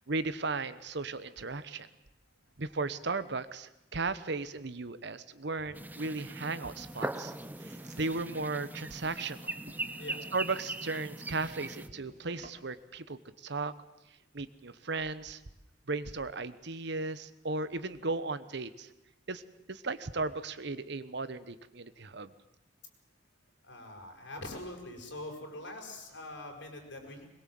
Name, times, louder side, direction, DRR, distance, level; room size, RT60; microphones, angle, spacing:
voice 1, 0.1-1.9 2.6-7.3 7.6-9.6 10.3-13.7 14.3-15.4 15.9-18.9 19.3-19.4 19.7-22.3, right 3 dB, 65° right, 14 dB, 1.1 m, -36 dB
sound 1, 5.7-11.9, right 2 dB, 10° right, 0.8 m, -40 dB
sound 2, 7.1-12.9, right 1 dB, 40° right, 2.4 m, -55 dB
voice 2, 23.6-27.2, left 1 dB, 70° left, 2 dB, 5.7 m, -44 dB
21.5 x 21.5 x 7.8 m, 0.91 s
head